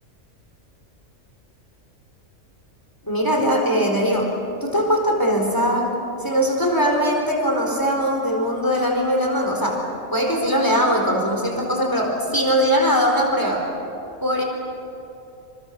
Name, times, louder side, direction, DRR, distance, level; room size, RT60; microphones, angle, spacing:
voice 1, 3.0-4.3 4.6-5.9 6.2-9.8 10.1-13.6 14.2-14.4, equal, 15° left, 1 dB, 4.3 m, -20 dB
28.5 x 28.5 x 6.7 m, 2.8 s
omnidirectional pair, 1.4 m